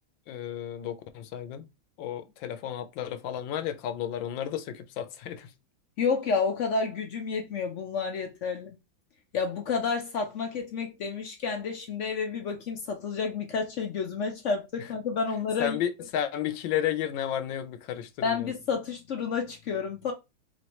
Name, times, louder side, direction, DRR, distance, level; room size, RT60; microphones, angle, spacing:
voice 1, 0.3-1.7 2.0-5.5 15.6-18.4, left 10 dB, 85° left, 1.4 m, -32 dB
voice 2, 6.0-8.8 9.3-15.8 18.2-20.1, left 5 dB, 65° left, 0.7 m, -30 dB
4.1 x 3.2 x 3.0 m
omnidirectional pair, 2.0 m